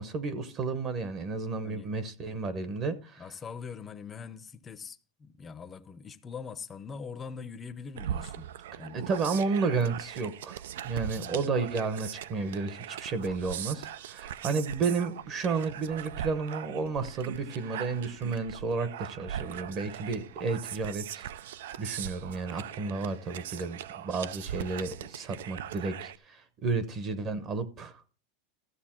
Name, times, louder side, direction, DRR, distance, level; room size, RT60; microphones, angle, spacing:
voice 1, 0.0-3.2 8.9-21.3 21.8-28.0, right 4 dB, 30° right, 0.8 m, -32 dB
voice 2, 1.6-2.0 3.2-8.5 8.8-9.1 11.1-11.5 23.6-24.0, left 5 dB, 15° left, 0.6 m, -43 dB
sound 1, 8.0-26.2, right 10 dB, 85° right, 0.5 m, -40 dB
14.0 x 6.7 x 4.4 m
supercardioid pair, 170°, 0 cm